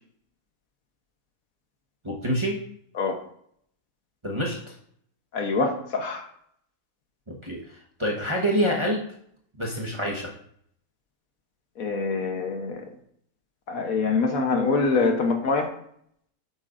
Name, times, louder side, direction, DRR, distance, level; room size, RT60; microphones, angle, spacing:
voice 1, 2.0-2.6 4.2-4.7 7.3-9.1 9.6-10.3, equal, 20° right, -2 dB, 1.1 m, -27 dB
voice 2, 5.3-6.2 11.8-12.9 13.7-15.7, left 4 dB, 65° left, 5 dB, 1.4 m, -25 dB
8.7 x 8.4 x 2.5 m, 0.66 s
omnidirectional pair, 1.7 m